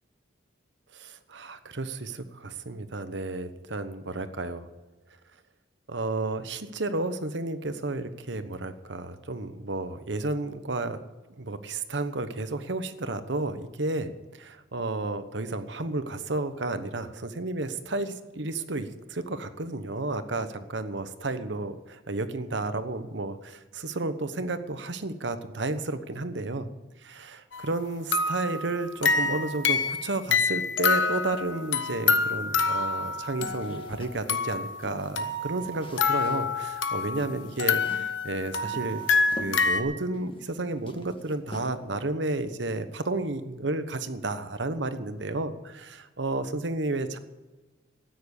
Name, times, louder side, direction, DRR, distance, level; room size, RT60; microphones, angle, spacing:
voice 1, 0.9-4.7 5.9-11.0 11.4-26.7 27.0-47.2, right 2 dB, 70° right, 11 dB, 1.1 m, -32 dB
sound 1, 27.5-27.7 28.1-33.9 34.3-34.7 35.2-37.3 37.6-39.8, left 4 dB, 85° left, 1.1 m, -27 dB
sound 2, 33.4-35.2 35.6-36.6 36.8-36.9 37.2-38.1 38.6-40.6 40.8-42.0, left 1 dB, 25° left, 1.5 m, -45 dB
13.5 x 9.5 x 8.3 m, 1.2 s
head